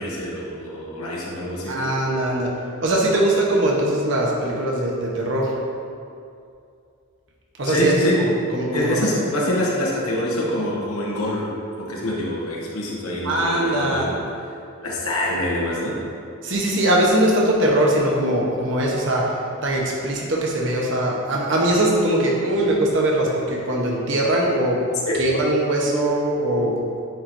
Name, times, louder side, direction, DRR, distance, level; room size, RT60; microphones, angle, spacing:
voice 1, 0.0-1.8 7.6-8.2 8.7-14.2 14.8-16.0 25.1-25.3, left 1 dB, 85° left, -4 dB, 1.1 m, -25 dB
voice 2, 1.7-2.6 2.8-5.5 7.6-9.0 13.2-14.1 16.4-19.4 19.6-24.8 25.2-27.0, right 1 dB, 55° right, -3 dB, 1.0 m, -21 dB
9.1 x 4.5 x 2.7 m, 2.4 s
head